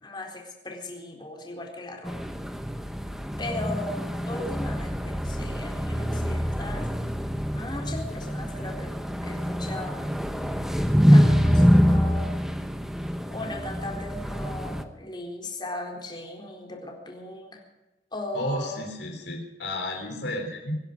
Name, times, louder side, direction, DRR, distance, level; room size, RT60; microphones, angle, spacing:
voice 1, 0.0-2.2 3.4-7.1 7.6-8.9 9.2-10.1 11.1-12.3 13.3-17.6 18.1-18.8, left 2 dB, 25° left, 1 dB, 4.0 m, -37 dB
sound 1, 2.0-14.8, equal, ahead, 1.1 m, -25 dB
voice 2, 18.3-20.8, left 1 dB, 75° left, 1 dB, 3.7 m, -32 dB
24.0 x 11.0 x 5.3 m, 1.1 s
head